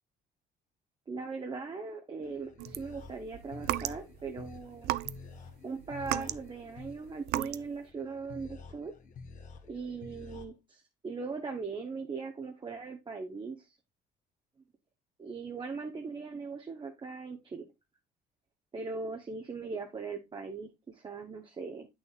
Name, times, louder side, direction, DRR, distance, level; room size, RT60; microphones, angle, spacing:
voice 1, 1.1-4.9 5.6-8.9 9.7-13.8 15.2-17.6 18.7-21.9, right 4 dB, 30° right, 3 dB, 1.0 m, -39 dB
sound 1, 2.2-10.4, left 4 dB, 50° left, 1.5 m, -49 dB
sound 2, 2.6-4.3 4.8-5.5 5.8-7.8, right 16 dB, 75° right, 0.4 m, -35 dB
8.3 x 6.3 x 2.4 m, 0.22 s
cardioid pair, 110°, 17 cm